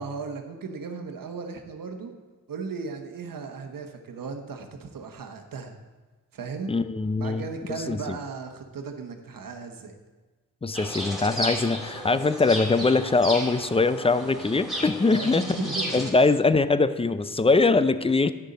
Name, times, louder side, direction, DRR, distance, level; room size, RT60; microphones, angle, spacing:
voice 1, 0.0-2.1 2.5-5.7 6.3-6.7 7.2-9.9 15.1-16.0, right 5 dB, 65° right, 5 dB, 1.1 m, -36 dB
voice 2, 6.7-7.4 7.7-8.2 10.6-18.3, left 3 dB, 15° left, 13 dB, 0.4 m, -22 dB
sound 1, 10.7-16.1, equal, ahead, 2.7 m, -33 dB
10.0 x 6.5 x 4.1 m, 1.3 s
cardioid pair, 45°, 35 cm